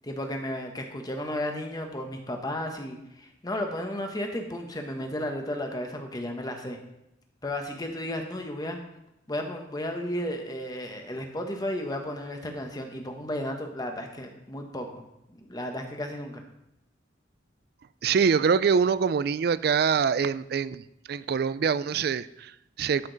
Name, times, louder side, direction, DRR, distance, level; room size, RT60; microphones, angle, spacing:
voice 1, 0.0-6.8 7.4-8.8 9.3-16.4, left 1 dB, 20° left, 4 dB, 1.0 m, -33 dB
voice 2, 18.0-23.1, right 6 dB, 55° right, 16 dB, 0.3 m, -25 dB
12.5 x 6.0 x 4.0 m, 0.84 s
head